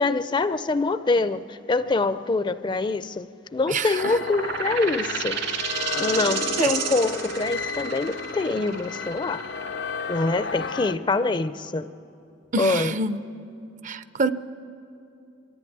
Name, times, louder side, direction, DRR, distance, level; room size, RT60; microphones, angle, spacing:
voice 1, 0.0-5.4 6.0-9.4 10.1-11.9 12.6-12.9, left 3 dB, 25° left, 0.4 m, -25 dB
voice 2, 3.7-4.1 6.6-6.7 12.5-13.2 13.8-14.3, right 3 dB, 45° right, 0.5 m, -26 dB
sound 1, 4.0-11.0, left 4 dB, 85° left, 0.6 m, -33 dB
sound 2, 4.2-11.5, right 6 dB, 70° right, 2.0 m, -32 dB
23.5 x 14.0 x 9.2 m
head